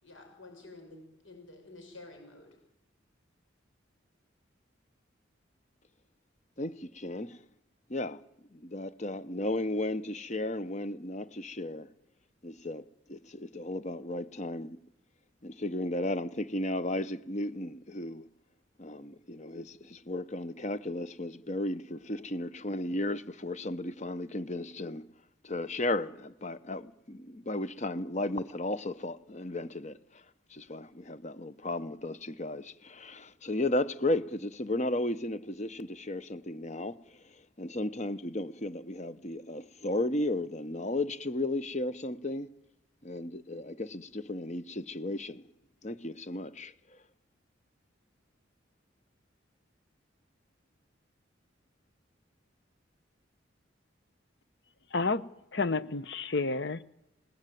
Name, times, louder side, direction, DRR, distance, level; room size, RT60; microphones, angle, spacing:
voice 1, 0.0-2.5, left 2 dB, 85° left, 6.4 m, -50 dB
voice 2, 6.6-7.4 7.9-8.2 8.5-11.9 12.4-12.8 13.1-14.8 15.4-18.2 18.8-25.0 25.4-30.0 30.5-37.0 37.6-42.5 43.0-45.4 45.8-46.7, left 1 dB, 35° left, 1.0 m, -34 dB
voice 3, 54.9-55.2 55.5-56.8, left 3 dB, 60° left, 1.0 m, -30 dB
28.0 x 19.0 x 9.3 m
head